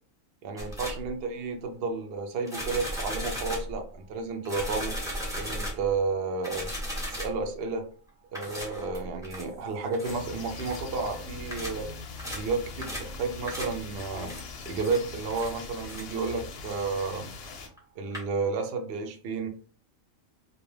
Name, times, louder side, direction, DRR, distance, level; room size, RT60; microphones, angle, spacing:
voice 1, 0.4-4.9 5.3-6.7 7.1-7.9 8.3-11.9 12.3-14.3 14.7-17.3 18.0-19.5, right 4 dB, 65° right, 4 dB, 0.6 m, -32 dB
sound 1, 0.6-1.1 2.5-3.8 4.5-5.9 6.4-7.4 8.3-9.5 9.9-10.2 10.6-10.8 11.5-11.8 12.2-12.5 12.8-13.2 13.5-13.8 14.2-14.5 14.8-15.0 15.3-15.5 15.8-16.1 17.8-17.9 18.1-18.2, equal, 5° right, 0.5 m, -36 dB
sound 2, 10.0-17.7, left 4 dB, 60° left, 0.7 m, -41 dB
2.3 x 2.2 x 3.1 m, 0.41 s
omnidirectional pair, 1.4 m